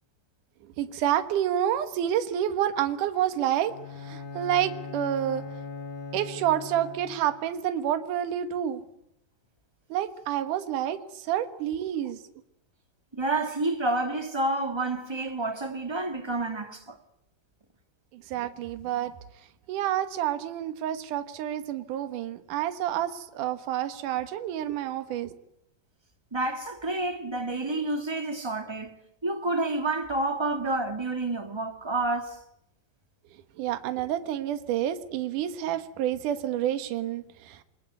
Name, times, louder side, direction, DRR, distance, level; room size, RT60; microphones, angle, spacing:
voice 1, 0.8-3.7 4.0-5.4 6.1-8.8 9.9-12.2 18.1-19.1 19.7-25.3 33.6-37.6, right 11 dB, 70° right, 2.8 m, -29 dB
Bowed string instrument, 3.7-7.4, left 3 dB, 60° left, 3.8 m, -40 dB
voice 2, 13.1-17.0 26.3-28.9 29.2-32.4, right 2 dB, 15° right, 1.1 m, -29 dB
26.5 x 22.0 x 9.3 m
omnidirectional pair, 4.0 m